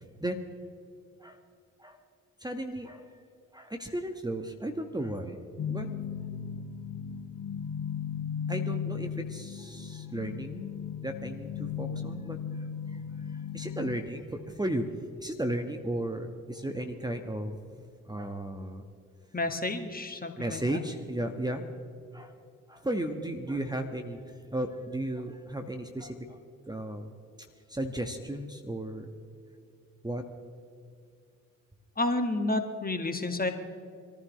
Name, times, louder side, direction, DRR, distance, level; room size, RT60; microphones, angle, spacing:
voice 1, 2.4-3.0 3.5-5.9 8.5-10.7 11.0-12.4 12.9-14.9 15.2-17.6 18.0-18.8 20.4-21.6 22.1-22.3 22.7-26.4 26.7-27.1 27.7-29.1 30.0-30.2, right 1 dB, 10° right, 5 dB, 1.5 m, -35 dB
sound 1, 5.6-14.0, left 7 dB, 45° left, 1.4 m, -36 dB
voice 2, 19.3-20.6 32.0-33.5, left 2 dB, 20° left, 6 dB, 1.9 m, -30 dB
25.5 x 14.5 x 3.2 m, 2.3 s
figure-of-eight pair, 40°, 40 cm